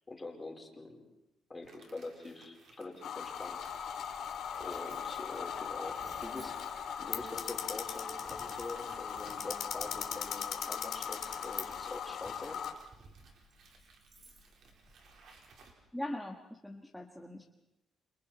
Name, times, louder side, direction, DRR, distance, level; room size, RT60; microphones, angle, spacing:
voice 1, 0.1-1.0 1.5-4.0 4.6-6.6 7.0-12.6, left 2 dB, 20° left, 1 dB, 5.0 m, -45 dB
sound 1, 1.6-15.7, right 4 dB, 70° right, 4.7 m, -60 dB
sound 2, 3.0-12.7, left 8 dB, 70° left, 2.8 m, -39 dB
Coin (dropping), 3.2-15.5, right 2 dB, 45° right, 4.9 m, -59 dB
voice 2, 15.9-17.5, left 1 dB, 5° left, 1 dB, 1.8 m, -41 dB
29.5 x 26.5 x 4.5 m, 0.92 s
cardioid pair, 90°, 0 cm